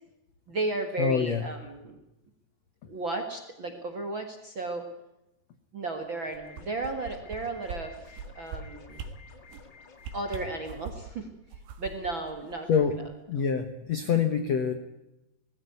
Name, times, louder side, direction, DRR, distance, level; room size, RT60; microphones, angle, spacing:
voice 1, 0.5-2.0 2.9-4.9 5.7-9.0 10.1-11.3 11.8-12.7, right 2 dB, 50° right, 4 dB, 1.5 m, -34 dB
voice 2, 1.0-1.4 12.7-13.0 13.3-14.7, left 6 dB, 75° left, 9 dB, 1.5 m, -25 dB
sound 1, 6.3-7.4 7.7-7.8 8.1-8.6 8.9-9.1 9.5-9.7 10.0-11.1 11.5-13.1 13.4-13.5, right 8 dB, 85° right, 4.0 m, -40 dB
sound 2, 6.4-10.8, left 5 dB, 55° left, 1.2 m, -53 dB
20.0 x 15.5 x 9.5 m, 0.91 s
omnidirectional pair, 4.9 m